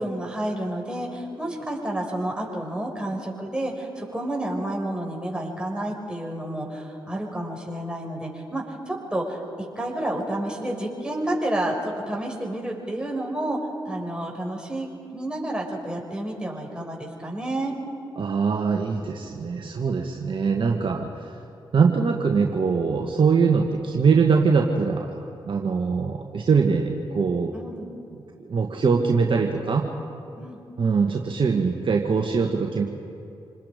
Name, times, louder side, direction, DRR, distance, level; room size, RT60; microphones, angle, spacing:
voice 1, 0.0-9.4 9.8-13.6 13.9-17.7 27.5-27.9 30.4-30.6, right 1 dB, 10° right, -1 dB, 6.3 m, -30 dB
voice 2, 18.2-21.4 21.7-27.5 28.5-29.9 30.8-32.8, right 5 dB, 55° right, 1 dB, 1.7 m, -22 dB
27.5 x 20.5 x 5.3 m, 2.5 s
supercardioid pair, 45°, 10 cm